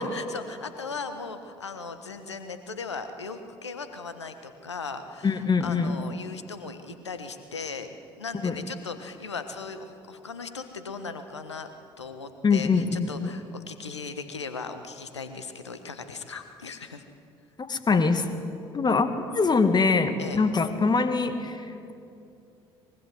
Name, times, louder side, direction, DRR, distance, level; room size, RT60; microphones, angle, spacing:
voice 1, 0.0-7.9 8.2-11.7 12.0-17.0 20.2-20.4, left 4 dB, 85° left, 9 dB, 1.3 m, -38 dB
voice 2, 5.2-6.0 8.4-8.6 12.4-13.3 17.6-18.3 18.7-19.1 19.3-21.9, left 4 dB, 30° left, 9 dB, 2.1 m, -23 dB
24.0 x 22.0 x 7.7 m, 2.6 s
figure-of-eight pair, 55°, 14 cm